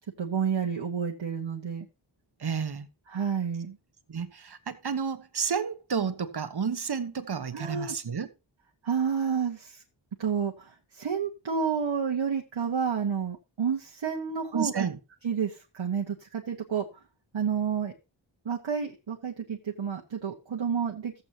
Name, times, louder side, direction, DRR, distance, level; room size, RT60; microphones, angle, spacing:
voice 1, 0.2-1.9 3.1-3.8 7.5-7.9 8.8-9.8 10.2-14.9 15.2-16.9 17.3-17.9 18.4-21.2, right 7 dB, 70° right, 1.4 m, -30 dB
voice 2, 2.4-2.9 4.1-8.3 14.5-15.0, right 6 dB, 55° right, 1.2 m, -31 dB
14.0 x 8.1 x 2.9 m
wide cardioid pair, 75°, 47 cm